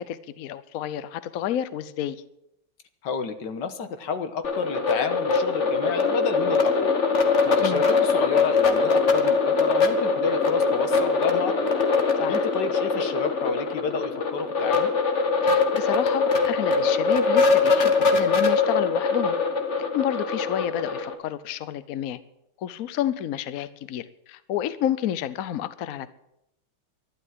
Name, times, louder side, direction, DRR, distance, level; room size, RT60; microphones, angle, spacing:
voice 1, 0.0-2.2 7.6-7.8 12.2-12.5 15.4-19.4 19.9-22.2 22.6-26.1, left 11 dB, 80° left, 14 dB, 0.7 m, -30 dB
voice 2, 3.0-6.9 7.4-11.7 12.3-14.9, left 5 dB, 60° left, 9 dB, 1.7 m, -30 dB
sound 1, 4.4-21.1, left 4 dB, 40° left, 1.4 m, -22 dB
12.0 x 12.0 x 7.5 m, 0.82 s
omnidirectional pair, 2.4 m